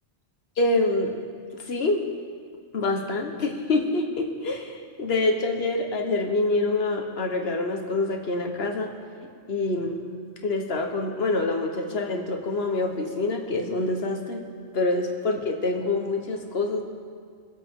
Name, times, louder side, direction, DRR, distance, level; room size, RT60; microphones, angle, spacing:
voice 1, 0.6-1.2 1.5-2.0 2.7-8.9 9.5-10.0 10.4-14.4 14.7-16.8, left 2 dB, 65° left, 2 dB, 1.6 m, -26 dB
24.0 x 8.3 x 3.8 m, 2.1 s
omnidirectional pair, 1.1 m